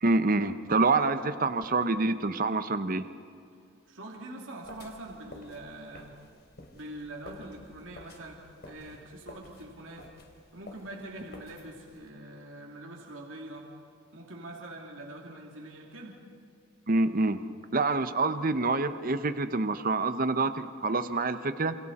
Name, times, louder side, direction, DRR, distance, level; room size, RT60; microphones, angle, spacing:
voice 1, 0.0-3.0 16.9-17.4 17.7-21.8, right 3 dB, 45° right, 10 dB, 0.8 m, -26 dB
voice 2, 3.9-6.2 6.7-10.1 10.5-13.7 14.1-16.2, right 1 dB, 70° right, -1 dB, 2.9 m, -44 dB
sound 1, 4.6-12.1, left 1 dB, 50° left, 3.2 m, -51 dB
28.5 x 28.0 x 4.3 m, 2.4 s
head